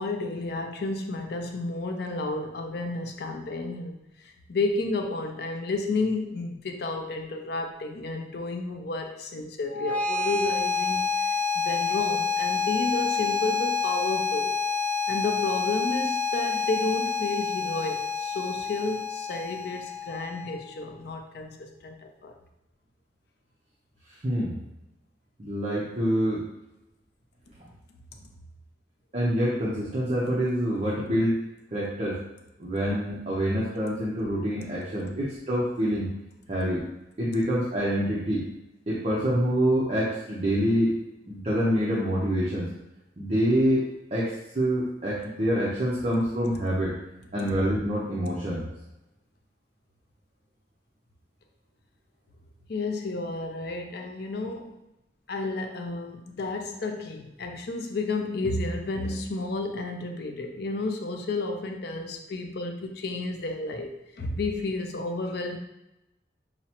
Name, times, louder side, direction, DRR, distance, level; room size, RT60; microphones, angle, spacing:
voice 1, 0.0-14.6 15.1-22.4 52.7-54.7 55.3-65.6, left 3 dB, 65° left, 3 dB, 0.5 m, -31 dB
sound 1, 9.7-20.7, left 5 dB, 10° left, 0.4 m, -28 dB
voice 2, 24.2-24.6 25.4-26.4 29.1-31.4 31.7-32.2 32.6-36.1 36.5-36.9 37.2-38.4 38.9-41.0 41.3-42.7 43.2-43.8 44.1-46.9 47.3-48.7, equal, 35° right, -6 dB, 0.6 m, -26 dB
5.8 x 2.0 x 2.8 m, 0.93 s
head